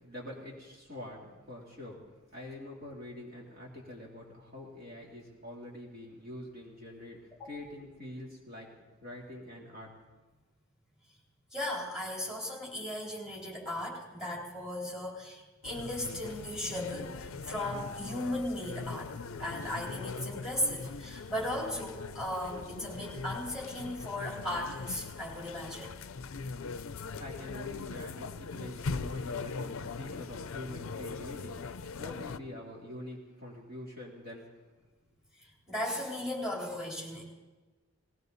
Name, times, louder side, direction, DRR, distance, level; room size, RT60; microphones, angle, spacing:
voice 1, 0.0-2.0 2.3-8.7 9.0-9.9 26.9-34.5, left 1 dB, 45° right, -3 dB, 3.1 m, -45 dB
voice 2, 11.5-19.1 19.4-25.9 35.7-37.2, left 1 dB, 5° right, -4 dB, 3.8 m, -36 dB
sound 1, 15.6-32.4, left 4 dB, 70° left, 0.5 m, -40 dB
20.0 x 18.0 x 4.0 m, 1.2 s
head